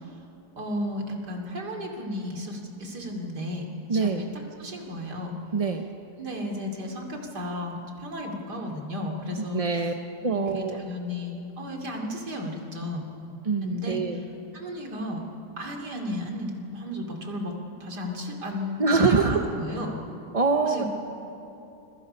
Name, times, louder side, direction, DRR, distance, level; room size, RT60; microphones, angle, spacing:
voice 1, 0.6-4.2 4.6-5.4 6.2-9.7 10.2-13.0 13.6-14.0 14.5-15.2 15.6-17.5 17.8-20.0 20.6-20.9, left 1 dB, 75° right, 2 dB, 3.3 m, -34 dB
voice 2, 3.9-4.2 5.5-5.9 9.5-9.9 10.2-10.8 13.4-14.2 18.8-19.5 20.3-20.8, right 4 dB, 35° right, 4 dB, 0.6 m, -24 dB
28.5 x 23.0 x 5.5 m, 3.0 s
omnidirectional pair, 1.8 m